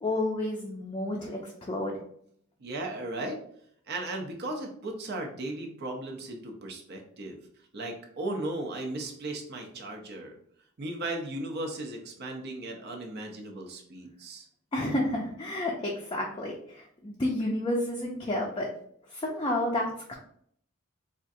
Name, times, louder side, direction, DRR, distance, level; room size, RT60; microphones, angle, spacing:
voice 1, 0.0-2.0 14.7-18.7 19.1-20.1, left 1 dB, 25° left, -2 dB, 0.5 m, -30 dB
voice 2, 2.6-3.4 3.9-7.4 7.7-10.3 10.8-14.5, right 2 dB, 50° right, 2 dB, 0.6 m, -36 dB
4.2 x 2.4 x 2.6 m, 0.66 s
head